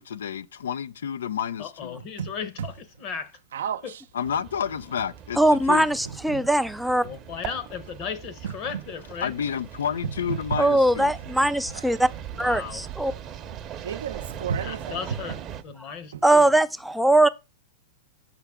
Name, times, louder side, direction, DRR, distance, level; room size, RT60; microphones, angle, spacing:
voice 1, 0.0-2.0 4.1-5.9 9.2-11.1, left 8 dB, 85° left, 0.4 m, -30 dB
voice 2, 1.6-3.4 3.8-3.9 7.0-9.3 12.3-12.8 14.6-15.4 15.6-16.5, left 7 dB, 40° left, 0.9 m, -36 dB
voice 3, 3.5-4.0 6.0-6.4 8.4-8.8 10.0-10.6 11.7-11.9 13.8-15.2 16.1-16.2, right 7 dB, 80° right, 0.5 m, -32 dB
sound 1, 4.2-15.6, right 9 dB, 30° right, 0.7 m, -40 dB
voice 4, 5.4-7.1 10.6-12.1 12.4-13.1 16.2-17.3, right 1 dB, ahead, 0.3 m, -20 dB
5.7 x 5.7 x 3.6 m
hypercardioid pair, 125°, 0 cm